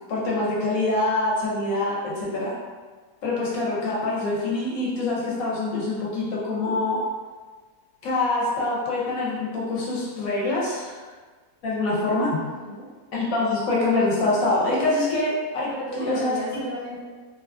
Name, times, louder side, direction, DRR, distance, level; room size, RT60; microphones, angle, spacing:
voice 1, 0.1-2.5 3.2-7.0 8.0-11.0 11.6-12.5 13.1-15.7 16.0-16.4, left 2 dB, 70° left, -5 dB, 1.0 m, -25 dB
voice 2, 12.5-12.9 15.7-17.0, equal, 40° right, -13 dB, 0.6 m, -34 dB
2.6 x 2.3 x 2.3 m, 1.4 s
omnidirectional pair, 1.7 m